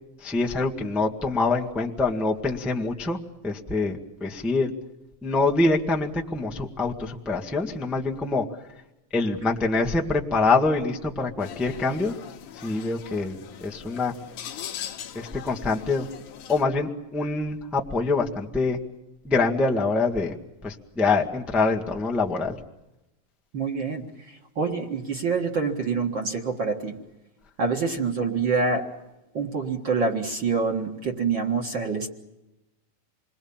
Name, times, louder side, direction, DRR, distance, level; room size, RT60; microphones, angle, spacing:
voice 1, 0.2-3.2 3.4-4.7 5.2-8.4 9.1-12.1 12.6-13.3 13.6-14.1 15.1-16.1 16.5-18.8 19.2-20.4 20.6-22.6, left 3 dB, ahead, 0 dB, 0.6 m, -25 dB
sound 1, 11.4-16.6, left 9 dB, 70° left, 2.6 m, -40 dB
voice 2, 23.5-24.0 24.6-26.9 27.6-28.9 29.3-32.1, right 4 dB, 40° right, 1 dB, 2.0 m, -26 dB
28.0 x 21.5 x 7.3 m, 0.97 s
omnidirectional pair, 3.9 m